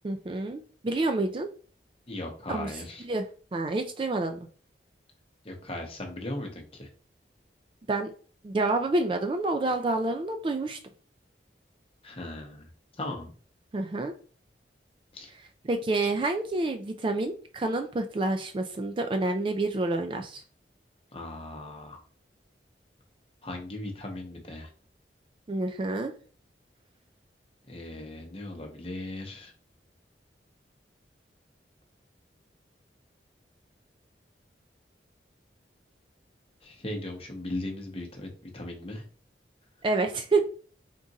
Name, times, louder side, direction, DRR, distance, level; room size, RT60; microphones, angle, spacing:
voice 1, 0.0-1.5 2.5-2.7 3.0-3.2 3.5-4.5 7.9-8.1 8.4-10.8 13.7-14.1 15.7-20.4 25.5-26.1 39.8-40.5, right 2 dB, 30° right, 6 dB, 0.3 m, -28 dB
voice 2, 2.1-3.1 5.4-6.9 12.0-12.7 13.0-13.3 15.1-15.3 21.1-22.0 23.4-24.7 27.7-29.5 36.6-39.0, left 1 dB, 30° left, 2 dB, 0.9 m, -38 dB
3.7 x 2.5 x 4.0 m, 0.41 s
head